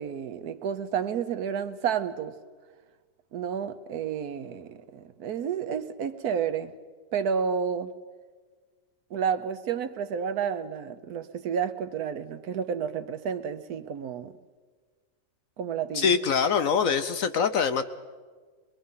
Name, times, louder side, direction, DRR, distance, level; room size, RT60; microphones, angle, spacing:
voice 1, 0.0-2.4 3.3-6.7 7.1-7.9 9.1-14.3 15.6-16.2, right 7 dB, 65° right, 1.3 m, -30 dB
voice 2, 15.9-17.8, left 6 dB, 60° left, 1.0 m, -24 dB
23.0 x 22.0 x 5.6 m
omnidirectional pair, 1.8 m